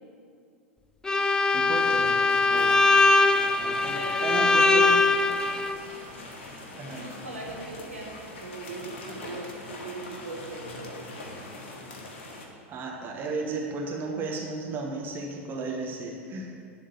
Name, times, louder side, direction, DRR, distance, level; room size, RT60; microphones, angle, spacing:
Bowed string instrument, 1.0-5.8, left 3 dB, 10° left, 0.3 m, -21 dB
voice 1, 1.5-2.1 2.5-2.7 3.6-4.9 6.8-7.0 12.7-16.5, right 3 dB, 30° right, 0 dB, 1.1 m, -34 dB
sound 1, 1.7-12.5, left 2 dB, 55° left, 1.3 m, -43 dB
voice 2, 3.9-4.7 6.9-11.1, right 2 dB, 85° right, -4 dB, 1.7 m, -40 dB
11.0 x 3.8 x 6.6 m, 2.4 s
figure-of-eight pair, 85°, 7 cm